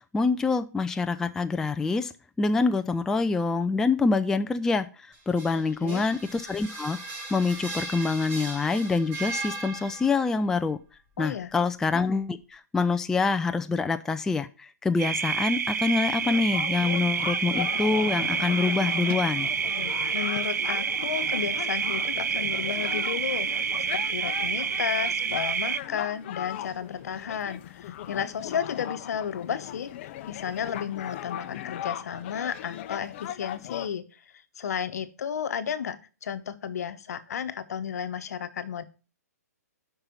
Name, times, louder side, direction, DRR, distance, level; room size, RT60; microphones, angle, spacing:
voice 1, 0.1-2.1 2.4-7.0 7.3-10.8 11.2-19.5, left 4 dB, 5° left, 9 dB, 0.3 m, -26 dB
sound 1, 5.1-10.3, right 3 dB, 25° right, 3.5 m, -38 dB
voice 2, 11.2-11.5 20.1-38.8, left 8 dB, 65° left, 12 dB, 1.0 m, -33 dB
sound 2, 15.0-25.8, right 6 dB, 85° right, 0.4 m, -28 dB
sound 3, 16.2-33.9, left 11 dB, 40° left, 0.7 m, -38 dB
6.7 x 5.7 x 7.1 m, 0.35 s
hypercardioid pair, 140°, 9 cm